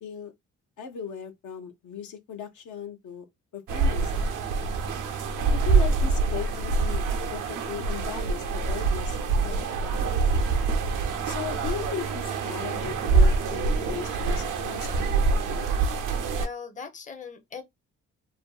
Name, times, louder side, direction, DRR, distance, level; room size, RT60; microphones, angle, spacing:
voice 1, 0.0-0.3 0.8-3.3 3.5-4.4 5.5-7.0 7.3-10.2 11.2-15.1, left 8 dB, 70° left, 0.6 m, -37 dB
sound 1, 3.7-16.5, right 4 dB, 85° right, 0.5 m, -25 dB
voice 2, 16.1-17.6, left 5 dB, 25° left, 0.6 m, -40 dB
2.6 x 2.5 x 2.3 m
cardioid pair, 65°, 31 cm